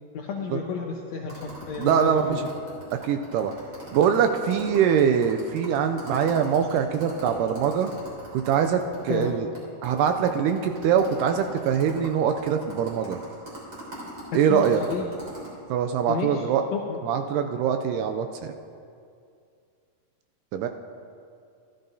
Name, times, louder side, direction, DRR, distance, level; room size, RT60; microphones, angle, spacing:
voice 1, 0.1-2.5 9.1-9.3 14.5-15.0 16.1-16.3 16.7-17.0, left 5 dB, 85° left, 1 dB, 1.6 m, -31 dB
sound 1, 1.3-9.3 9.5-9.6 9.8-15.5, right 2 dB, 35° right, 3.6 m, -41 dB
voice 2, 1.8-2.5 3.0-3.5 3.9-7.9 8.3-9.5 9.8-13.2 14.3-14.8 15.7-16.6 17.0-18.5 20.5-20.7, right 7 dB, 80° right, 6 dB, 2.0 m, -23 dB
14.0 x 12.5 x 2.7 m, 2.4 s
omnidirectional pair, 4.0 m